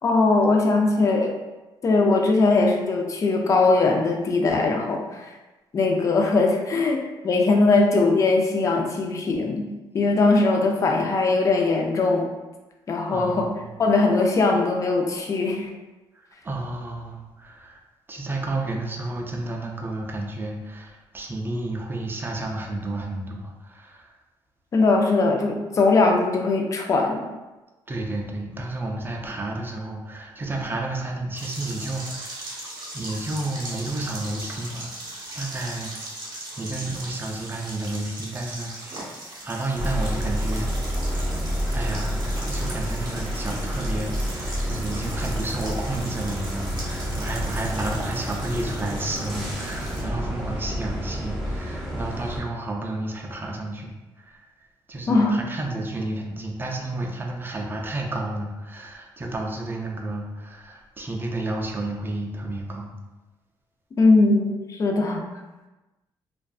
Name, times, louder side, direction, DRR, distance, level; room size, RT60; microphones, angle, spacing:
voice 1, 0.0-1.3 1.8-5.3 5.7-7.0 7.2-9.7 9.9-12.2 12.9-13.5 13.8-15.7 24.7-27.2 55.1-55.3 64.0-65.2, left 3 dB, 35° left, 1 dB, 0.4 m, -20 dB
voice 2, 13.1-13.7 16.1-17.8 18.1-24.1 27.9-32.6 32.9-35.9 36.6-39.1 39.4-40.7 41.7-53.9 54.2-54.4 54.9-62.9, right 2 dB, 25° right, 0 dB, 0.4 m, -31 dB
sound 1, 31.3-50.0, right 1 dB, 50° right, 0.8 m, -39 dB
sound 2, 39.8-52.4, equal, 10° left, 0.7 m, -29 dB
2.5 x 2.1 x 2.3 m, 1.1 s
cardioid pair, 100°, 9 cm